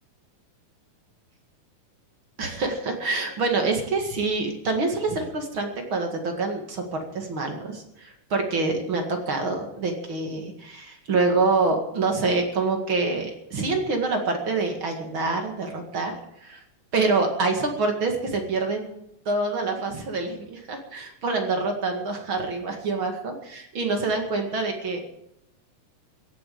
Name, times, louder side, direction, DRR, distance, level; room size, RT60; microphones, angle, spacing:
voice 1, 2.4-16.1 16.4-16.6 16.9-18.9 19.3-25.0, right 3 dB, 45° right, 3 dB, 2.6 m, -26 dB
16.5 x 8.7 x 8.7 m, 0.80 s
omnidirectional pair, 3.7 m